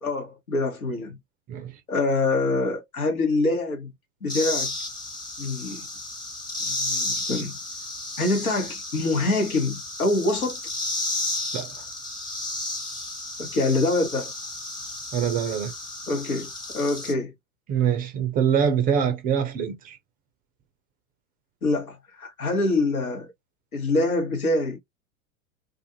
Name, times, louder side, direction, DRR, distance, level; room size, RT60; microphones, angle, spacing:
voice 1, 0.0-1.2 1.9-3.9 4.2-4.7 5.4-5.9 6.6-7.6 8.2-10.6 13.4-14.3 16.1-16.5 16.7-17.3 21.6-23.3 23.7-24.8, left 2 dB, 85° left, 1.2 m, -25 dB
voice 2, 1.5-1.8 11.5-11.7 15.1-15.7 17.7-20.0, right 8 dB, 20° right, 0.4 m, -24 dB
sound 1, 4.3-17.1, left 2 dB, 10° left, 0.9 m, -33 dB
2.5 x 2.4 x 2.7 m
figure-of-eight pair, 95°, 42 cm